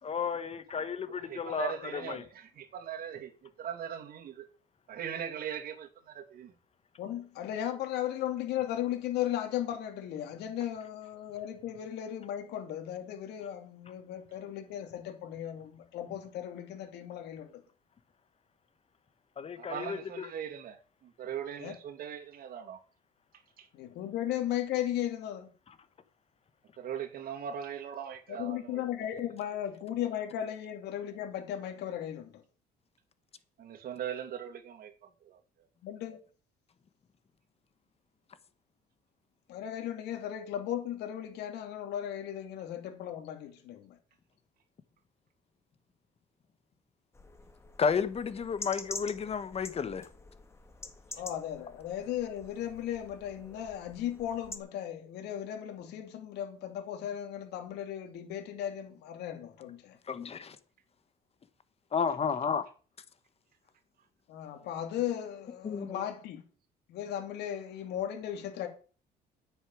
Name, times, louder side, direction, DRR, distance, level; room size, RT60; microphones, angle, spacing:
voice 1, 0.0-2.2 19.4-20.3 25.7-25.8 47.8-50.1 60.1-60.6 61.9-62.6 65.6-66.0, left 6 dB, 35° left, 1.5 m, -32 dB
voice 2, 0.7-4.5 4.9-6.5 19.6-22.8 23.6-23.7 26.8-28.8 33.6-35.7, right 9 dB, 60° right, 2.5 m, -40 dB
voice 3, 7.0-17.6 21.6-21.7 23.7-25.5 28.3-32.4 35.8-36.2 39.5-44.0 51.2-59.9 64.3-66.4 66.9-68.7, left 11 dB, 80° left, 2.9 m, -36 dB
sound 1, 47.1-54.6, left 3 dB, 15° left, 1.8 m, -47 dB
9.9 x 6.9 x 8.5 m
cardioid pair, 110°, 17 cm